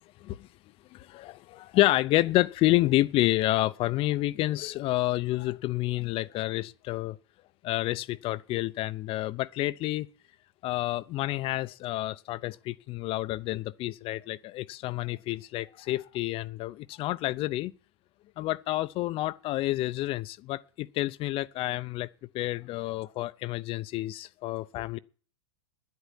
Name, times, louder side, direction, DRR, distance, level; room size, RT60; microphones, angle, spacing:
voice 1, 0.9-7.2 7.6-10.1 10.6-17.7 18.4-22.1 22.3-25.0, left 17 dB, 40° left, 0.6 m, -29 dB
10.5 x 8.3 x 10.0 m
hypercardioid pair, 110°, 15 cm